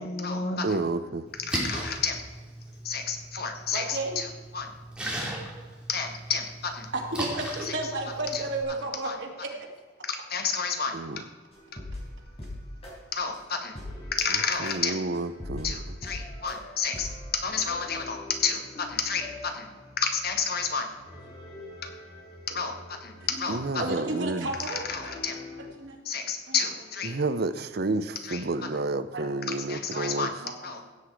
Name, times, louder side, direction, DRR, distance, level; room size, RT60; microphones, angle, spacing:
voice 1, 0.0-0.8 1.4-2.2 2.8-4.7 5.9-6.9 7.6-7.9 8.3-8.5 9.0-9.2 10.0-11.0 13.1-13.7 14.1-15.0 15.6-19.7 20.0-20.9 22.5-24.0 24.6-25.4 26.0-27.1 28.2-28.7 29.5-30.3 30.6-30.9, left 5 dB, 60° left, 5 dB, 1.5 m, -31 dB
voice 2, 0.6-1.2 10.9-11.2 14.6-15.8 23.5-24.5 27.0-30.3, right 3 dB, 60° right, 12 dB, 0.7 m, -30 dB
Splash splatter, 1.3-8.6, right 1 dB, 5° right, 2.6 m, -37 dB
voice 3, 3.7-4.2 6.9-9.5 22.5-22.6 23.8-25.2 25.7-26.0 26.5-26.6 29.1-29.3 29.9-30.9, right 2 dB, 85° right, 0 dB, 2.4 m, -33 dB
sound 1, 11.5-12.9 13.3-13.4 13.7-25.6, left 1 dB, 35° left, 4.3 m, -43 dB
16.5 x 8.1 x 4.9 m, 1.4 s
head